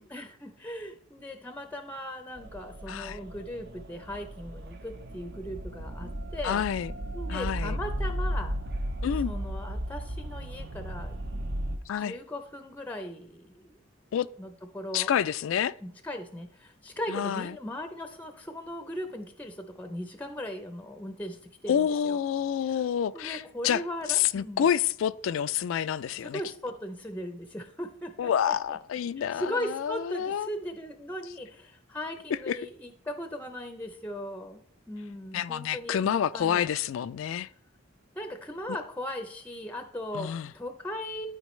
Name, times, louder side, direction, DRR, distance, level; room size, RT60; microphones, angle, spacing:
voice 1, 0.0-6.6 7.1-8.6 9.2-11.2 12.0-13.8 14.4-15.1 15.8-22.2 23.1-24.7 26.1-28.8 29.3-34.6 34.9-36.7 38.2-41.3, left 1 dB, 10° left, 0.5 m, -38 dB
sound 1, 2.4-11.8, right 1 dB, 55° right, 0.7 m, -35 dB
voice 2, 2.9-3.2 6.4-6.9 7.3-7.8 9.0-9.3 11.9-12.2 14.1-14.3 14.9-15.7 17.1-17.5 21.7-23.8 24.1-26.4 28.2-30.5 32.5-32.6 35.3-37.5 40.1-40.5, left 9 dB, 70° left, 0.3 m, -28 dB
12.0 x 4.5 x 3.1 m
head